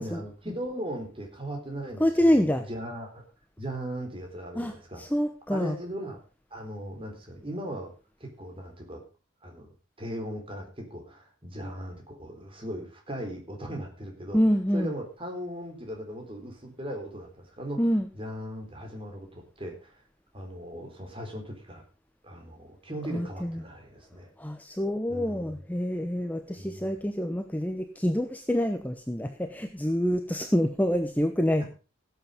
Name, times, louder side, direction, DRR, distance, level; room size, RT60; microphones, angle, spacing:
voice 1, 0.0-3.2 3.6-5.0 5.5-6.2 6.5-7.9 8.2-9.0 9.4-9.7 10.0-14.4 14.7-17.8 18.1-20.0 20.3-21.8 22.2-24.3 25.1-25.7 26.6-26.9, equal, 25° right, 3 dB, 3.9 m, -38 dB
voice 2, 2.0-2.6 4.6-5.7 14.3-14.9 17.8-18.1 23.1-23.6 24.4-31.6, equal, 10° left, 6 dB, 0.8 m, -26 dB
16.5 x 8.3 x 5.1 m, 0.34 s
head